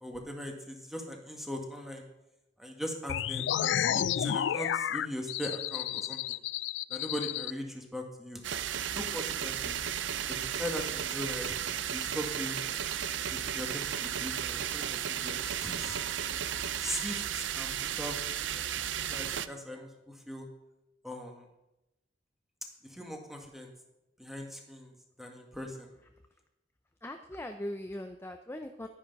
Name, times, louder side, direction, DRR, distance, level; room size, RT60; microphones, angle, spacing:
voice 1, 0.0-2.0 2.6-6.4 6.9-8.4 8.9-9.8 10.3-11.6 11.9-12.6 13.3-16.1 16.8-18.7 19.1-20.5 21.0-21.4 22.8-23.7 24.2-25.9, equal, ahead, 2 dB, 1.7 m, -40 dB
sound 1, 3.1-7.5, left 10 dB, 80° left, 0.3 m, -31 dB
sound 2, 8.4-19.5, right 9 dB, 90° right, 0.5 m, -34 dB
voice 2, 27.0-28.9, left 1 dB, 15° left, 5 dB, 0.6 m, -40 dB
11.0 x 10.0 x 5.4 m, 0.92 s
head